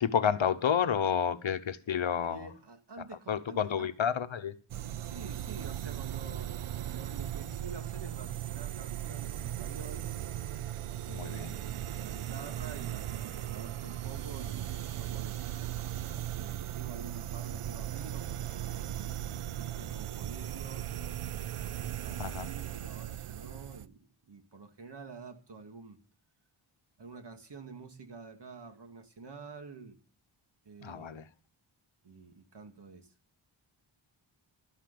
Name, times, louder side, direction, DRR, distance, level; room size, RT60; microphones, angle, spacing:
voice 1, 0.0-2.5 3.3-4.5 11.1-11.5 22.2-22.5 30.8-31.2, left 8 dB, 65° left, 1.1 m, -30 dB
voice 2, 2.2-3.9 5.0-6.5 6.9-10.1 11.1-15.4 16.4-21.0 21.7-26.0 27.0-30.0 30.6-31.2 32.0-33.1, right 4 dB, 55° right, 2.2 m, -48 dB
sound 1, 4.7-23.9, right 12 dB, 85° right, 0.7 m, -38 dB
13.0 x 9.9 x 6.8 m
wide cardioid pair, 85°, 49 cm